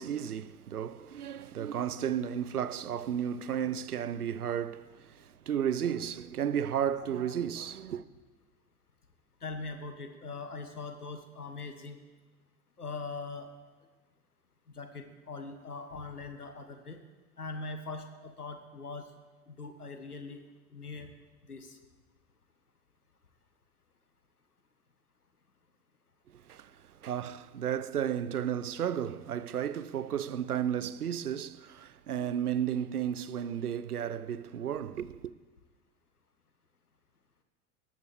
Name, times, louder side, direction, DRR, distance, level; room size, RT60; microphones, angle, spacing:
voice 1, 0.0-8.0 26.3-35.3, right 9 dB, 80° right, 0.7 m, -33 dB
voice 2, 9.4-12.0 12.8-13.5 14.7-17.0 17.4-19.1 19.5-20.4 20.7-21.1 21.5-21.8, left 3 dB, 85° left, 1.2 m, -41 dB
19.0 x 14.5 x 3.4 m
figure-of-eight pair, 75°, 45 cm